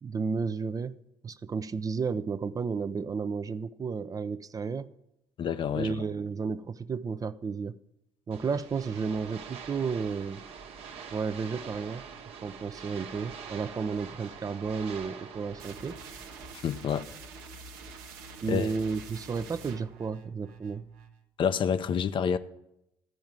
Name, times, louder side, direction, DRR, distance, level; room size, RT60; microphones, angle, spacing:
voice 1, 0.0-1.0 1.2-4.9 5.7-7.8 8.3-10.4 11.1-12.1 12.4-16.0 18.4-20.8, right 5 dB, 35° right, 0.5 m, -32 dB
voice 2, 5.4-5.9 16.5-17.1 18.5-18.7 21.4-22.4, left 7 dB, 50° left, 0.6 m, -28 dB
sound 1, 8.3-16.5, right 6 dB, 65° right, 1.2 m, -45 dB
sound 2, 15.6-21.2, right 3 dB, 85° right, 0.9 m, -46 dB
13.5 x 4.7 x 8.9 m
hypercardioid pair, 65°, 11 cm